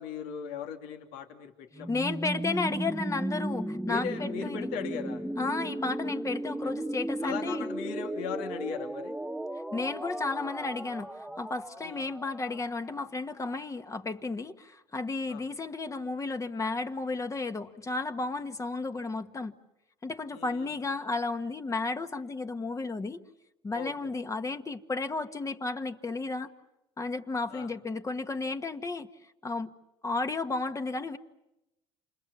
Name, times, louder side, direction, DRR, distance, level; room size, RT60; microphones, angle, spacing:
voice 1, 0.0-2.1 3.9-5.3 6.4-6.7 7.2-9.2 11.8-12.0 15.3-15.4 20.3-20.7 23.7-24.1 27.5-27.7, left 7 dB, 75° left, 5 dB, 2.7 m, -38 dB
sound 1, 1.7-13.5, right 1 dB, 5° right, 0.9 m, -35 dB
voice 2, 1.9-4.7 5.4-7.7 9.7-19.5 20.0-23.2 23.6-26.5 27.0-29.1 29.4-29.7 30.0-31.2, left 3 dB, 20° left, 8 dB, 1.5 m, -33 dB
29.0 x 27.0 x 7.1 m, 0.93 s
supercardioid pair, 90°, 14 cm